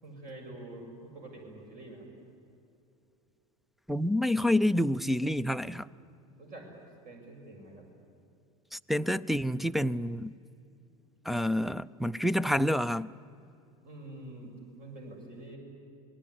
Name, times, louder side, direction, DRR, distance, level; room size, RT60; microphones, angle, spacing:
voice 1, 0.0-2.1 5.6-5.9 6.4-7.9 13.8-15.6, right 2 dB, 45° right, 7.0 m, -47 dB
voice 2, 3.9-5.9 8.7-10.3 11.2-13.1, left 1 dB, ahead, 0.5 m, -28 dB
26.0 x 19.5 x 9.8 m
hypercardioid pair, 95°, 19 cm